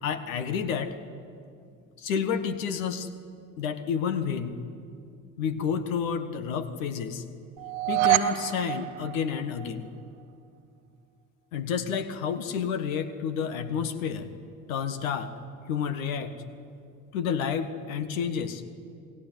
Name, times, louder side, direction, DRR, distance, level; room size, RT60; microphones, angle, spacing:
voice 1, 0.0-0.9 2.0-3.1 3.6-4.6 5.4-7.2 7.9-9.8 11.5-14.3 14.7-15.3 15.7-16.4 17.1-18.6, left 7 dB, 80° left, 11 dB, 1.6 m, -30 dB
sound 1, 7.6-9.9, right 15 dB, 75° right, 1.0 m, -27 dB
29.0 x 19.0 x 9.3 m, 2.4 s
hypercardioid pair, 55°, 40 cm